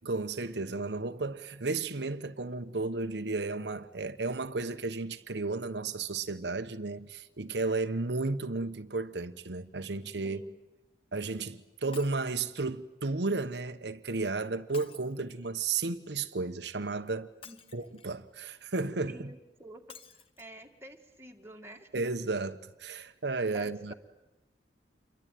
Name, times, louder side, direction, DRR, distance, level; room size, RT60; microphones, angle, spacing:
voice 1, 0.0-10.4 11.1-17.3 17.7-19.3 21.9-23.9, right 3 dB, 80° right, 1.1 m, -33 dB
voice 2, 10.2-10.5 17.4-17.6 19.1-20.0 20.4-21.9 23.5-23.9, right 1 dB, 15° right, 2.2 m, -48 dB
Shatter, 11.9-12.4 14.7-15.6 17.4-18.2 19.9-20.5 21.1-21.2 21.5-21.6, left 7 dB, 30° left, 1.1 m, -52 dB
28.0 x 23.0 x 9.3 m
head